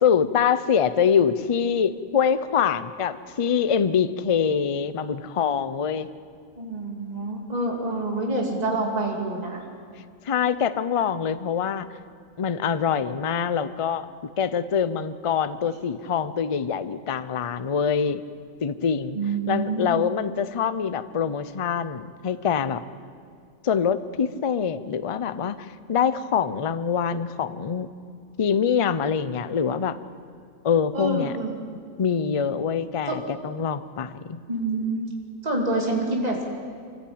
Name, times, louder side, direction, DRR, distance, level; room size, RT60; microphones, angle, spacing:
voice 1, 0.0-6.1 10.3-11.9 12.4-14.1 14.4-18.2 18.6-19.2 19.5-22.8 23.6-25.6 25.9-27.9 28.4-30.0 30.6-31.3 32.0-34.4, left 7 dB, 40° left, 13 dB, 0.5 m, -24 dB
voice 2, 6.6-9.6 19.1-20.0 30.9-31.6 33.1-33.2 34.5-35.1 35.4-36.4, right 2 dB, 30° right, -1 dB, 2.7 m, -27 dB
25.0 x 15.0 x 8.7 m, 2.2 s
omnidirectional pair, 1.5 m